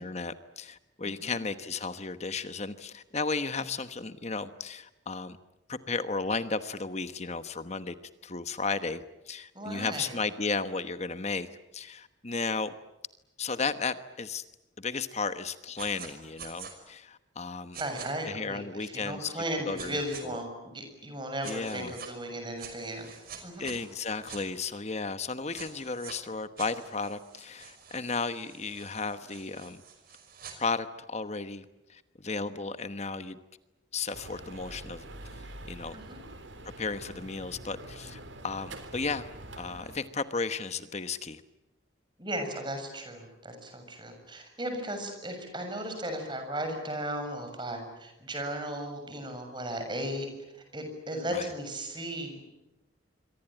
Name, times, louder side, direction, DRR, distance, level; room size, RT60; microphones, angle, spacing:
voice 1, 0.0-5.4 5.7-7.9 8.2-11.5 11.7-12.7 13.4-14.4 14.8-17.8 18.3-20.4 21.4-21.9 23.6-29.8 30.6-31.6 31.9-33.4 33.9-35.0 35.7-35.9 36.8-39.2 39.6-41.4 51.3-51.5, left 4 dB, 35° left, 1.1 m, -34 dB
voice 2, 1.0-1.4 9.5-10.2 17.8-23.1 23.4-23.7 35.9-36.2 42.2-50.3 50.7-52.4, right 1 dB, 25° right, 7.0 m, -36 dB
sound 1, 15.8-16.1 16.4-16.7 17.7-18.1 19.8-20.2 21.4-22.1 22.6-24.4 25.5-26.2 26.6-30.5, right 7 dB, 50° right, 5.7 m, -46 dB
sound 2, 34.1-40.0, right 1 dB, 80° right, 3.5 m, -45 dB
27.0 x 24.0 x 9.0 m
head